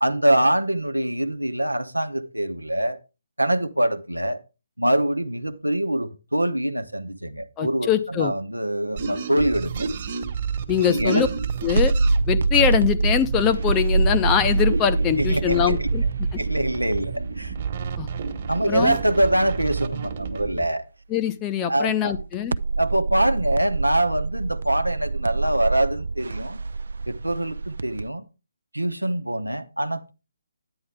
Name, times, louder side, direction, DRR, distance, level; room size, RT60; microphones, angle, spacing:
voice 1, 0.0-3.0 3.4-4.4 4.8-9.9 10.8-11.2 15.2-15.9 16.4-17.6 17.8-17.9 18.5-20.8 21.7-22.1 22.8-26.6 27.1-28.3 28.7-30.1, right 1 dB, 90° right, 1.0 m, -24 dB
voice 2, 7.6-8.3 10.7-11.3 11.6-11.9 12.3-16.0 18.0-18.1 18.7-19.0 21.1-22.6, left 9 dB, 15° left, 0.7 m, -22 dB
sound 1, 9.0-20.7, right 6 dB, 35° right, 1.4 m, -30 dB
sound 2, 10.3-10.8 11.2-19.5 19.8-19.9 22.1-28.1, right 3 dB, 60° right, 0.4 m, -26 dB
9.8 x 9.6 x 3.4 m
figure-of-eight pair, 140°, 0 cm